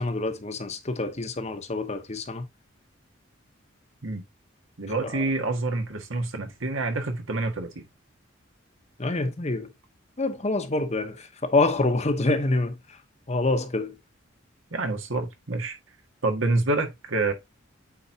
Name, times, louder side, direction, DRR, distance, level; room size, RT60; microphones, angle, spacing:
voice 1, 0.0-2.5 5.0-5.1 9.0-9.7 10.2-12.7 13.3-13.9, left 2 dB, 35° left, 0.9 m, -26 dB
voice 2, 4.8-7.8 14.7-15.8 16.2-17.3, right 2 dB, 80° right, 1.7 m, -27 dB
8.4 x 4.6 x 2.8 m
head